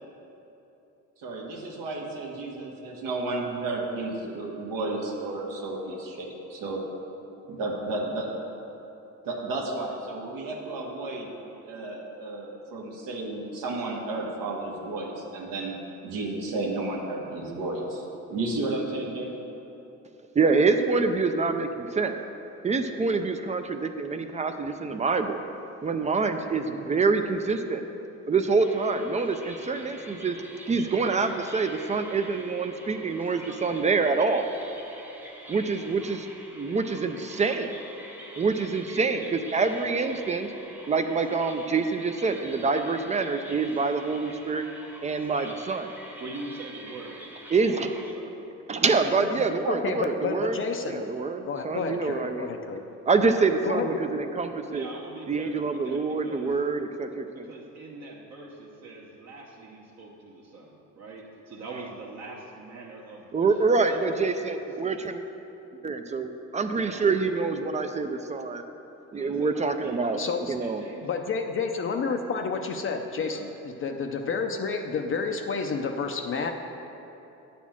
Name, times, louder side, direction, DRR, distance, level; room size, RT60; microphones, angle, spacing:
voice 1, 1.2-6.8 7.5-8.3 9.2-11.3 11.6-15.8 16.0-18.0 18.3-19.4, right 2 dB, 80° right, -1 dB, 1.4 m, -32 dB
voice 2, 20.4-22.2 22.6-25.4 25.8-27.8 28.3-30.4 30.7-34.5 35.5-37.7 38.4-40.5 40.9-44.6 45.0-45.9 47.5-47.9 48.7-50.6 50.9-52.5 53.1-54.9 55.3-57.4 63.3-65.3 65.8-68.6 69.1-70.2 70.5-70.8, right 4 dB, 20° right, 7 dB, 0.4 m, -26 dB
sound 1, 28.6-48.1, right 1 dB, 5° right, 0.9 m, -46 dB
voice 3, 46.2-47.3 47.7-47.9 48.1-48.4 54.7-56.5 57.3-64.0 66.8-67.4 69.1-71.2 73.1-73.6, right 3 dB, 55° right, -3 dB, 1.0 m, -43 dB
voice 4, 49.7-51.1 51.4-52.8 53.6-54.0 70.2-70.5 71.0-76.5, left 5 dB, 40° left, 4 dB, 0.5 m, -30 dB
9.0 x 4.2 x 7.2 m, 3.0 s
cardioid pair, 110°, 33 cm